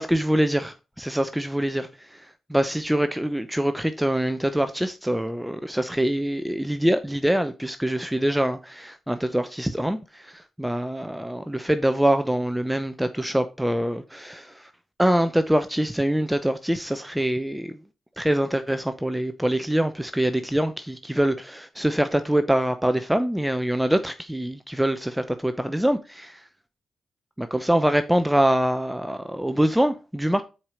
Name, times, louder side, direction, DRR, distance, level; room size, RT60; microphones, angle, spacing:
voice 1, 0.0-1.9 2.5-10.0 10.6-14.5 15.0-17.8 18.2-26.4 27.4-30.4, right 1 dB, 5° right, 0.7 m, -24 dB
7.2 x 4.9 x 4.9 m
cardioid pair, 65°, 0 cm